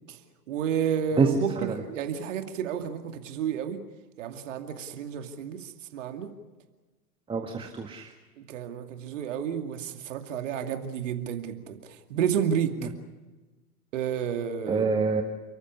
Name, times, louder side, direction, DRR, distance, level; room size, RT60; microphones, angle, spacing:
voice 1, 0.5-3.8 4.2-6.3 8.4-12.7 13.9-14.9, right 8 dB, 50° right, 6 dB, 2.5 m, -31 dB
voice 2, 1.2-1.8 7.3-8.1 12.8-12.9 14.7-15.2, right 4 dB, 10° right, 4 dB, 1.8 m, -26 dB
30.0 x 14.5 x 9.8 m, 1.2 s
figure-of-eight pair, 105°, 47 cm